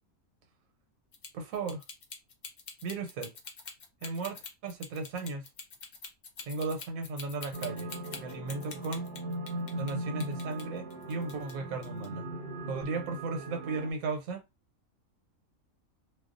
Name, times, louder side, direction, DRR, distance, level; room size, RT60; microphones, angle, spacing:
sound 1, 1.1-9.9 10.2-11.5 11.8-12.1, left 5 dB, 60° left, 0.4 m, -45 dB
voice 1, 1.3-1.8 2.8-3.3 4.0-5.5 6.5-7.9 8.2-9.1 9.8-12.3 12.7-14.4, right 3 dB, 90° right, 1.1 m, -35 dB
sound 2, 7.5-13.9, right 1 dB, 55° right, 0.7 m, -39 dB
2.4 x 2.2 x 2.4 m
omnidirectional pair, 1.4 m